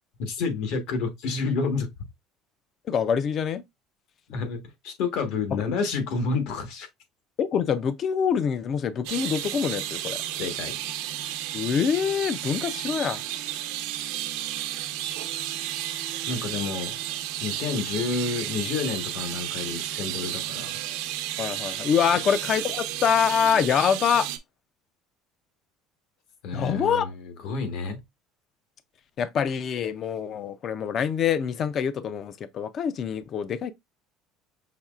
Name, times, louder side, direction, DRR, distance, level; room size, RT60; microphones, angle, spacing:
voice 1, 0.2-1.9 4.3-6.9 10.4-10.8 16.3-17.0 17.4-20.8 22.1-22.2 26.4-27.1 27.4-28.0, left 4 dB, 65° left, 1.3 m, -29 dB
voice 2, 2.8-3.6 5.5-5.6 7.4-10.2 11.5-13.2 21.4-24.3 26.5-27.1 29.2-33.7, left 7 dB, 35° left, 0.4 m, -25 dB
sound 1, 9.0-24.4, right 12 dB, 85° right, 0.7 m, -32 dB
5.8 x 3.1 x 2.4 m
cardioid pair, 150°, 0 cm